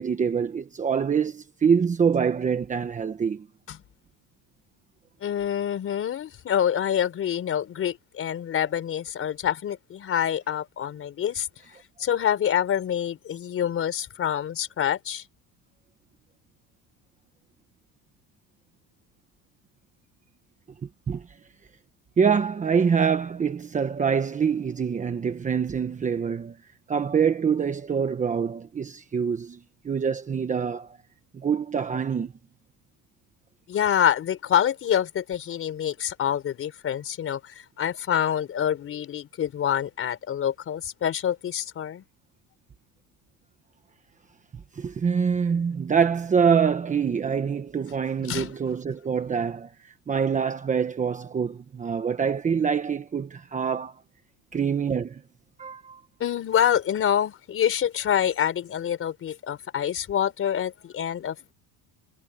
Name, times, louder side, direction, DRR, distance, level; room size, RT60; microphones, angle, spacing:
voice 1, 0.0-3.5 21.1-21.2 22.2-26.6 26.9-29.6 29.8-31.0 31.3-32.3 44.7-49.7 50.1-54.0 54.5-55.2 55.6-56.0, right 6 dB, 20° right, 1.2 m, -25 dB
voice 2, 5.2-11.5 12.0-15.2 33.7-42.0 48.2-48.5 56.2-61.5, left 9 dB, 35° left, 4.6 m, -26 dB
cardioid pair, 170°, 38 cm